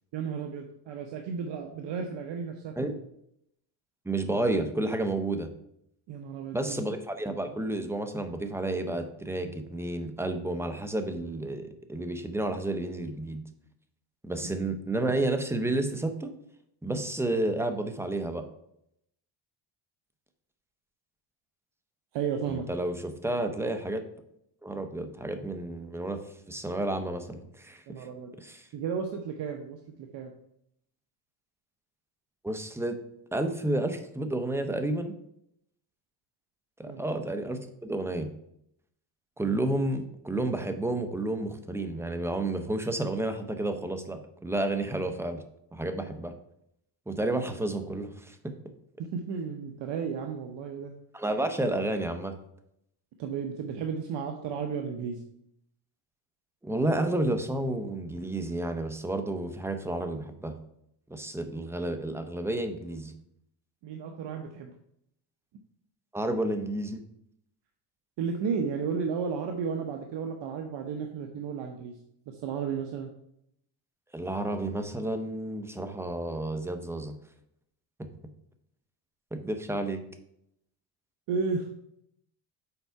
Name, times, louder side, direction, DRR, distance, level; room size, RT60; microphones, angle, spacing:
voice 1, 0.1-2.8 6.1-6.8 22.1-22.7 27.9-28.3 28.7-30.3 36.9-37.0 49.0-50.9 53.2-55.2 63.8-64.7 68.2-72.0 72.3-73.1 81.3-81.7, right 6 dB, 60° right, 4 dB, 0.9 m, -33 dB
voice 2, 4.0-5.5 6.5-13.4 14.2-16.3 16.8-18.5 22.4-24.0 24.6-26.2 26.5-28.1 28.4-28.7 32.4-33.0 33.3-35.1 36.8-38.3 39.4-45.4 45.7-46.3 47.1-48.5 51.1-52.3 56.6-60.5 61.1-63.1 66.1-67.0 74.1-77.1 78.0-78.1 79.3-80.0, right 2 dB, 5° right, 7 dB, 0.6 m, -31 dB
7.0 x 4.6 x 4.6 m, 0.74 s
cardioid pair, 135°, 48 cm